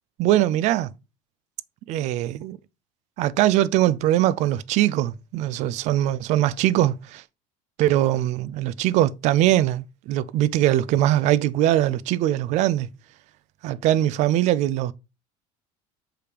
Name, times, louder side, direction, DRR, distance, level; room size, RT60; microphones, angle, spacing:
voice 1, 0.2-0.9 1.9-2.6 3.2-7.2 7.8-12.9 13.6-14.9, right 13 dB, 45° right, 0.4 m, -21 dB
6.7 x 5.0 x 2.9 m
cardioid pair, 160°, 17 cm